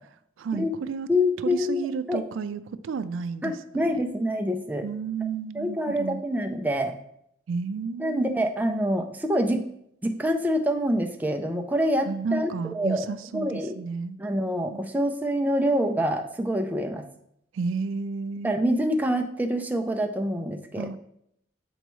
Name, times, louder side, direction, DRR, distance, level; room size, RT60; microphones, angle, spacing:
voice 1, 0.4-1.1 1.4-3.6 3.9-4.1 4.8-6.2 7.5-8.4 12.0-14.2 14.7-14.9 17.5-18.5 20.8-21.0, right 5 dB, 85° right, 12 dB, 0.4 m, -32 dB
voice 2, 1.1-2.2 3.4-4.9 5.5-7.0 8.0-9.6 10.0-13.1 13.3-13.8 14.2-17.1 18.4-20.9, equal, 10° right, 3 dB, 0.4 m, -26 dB
7.9 x 4.4 x 3.1 m, 0.75 s
head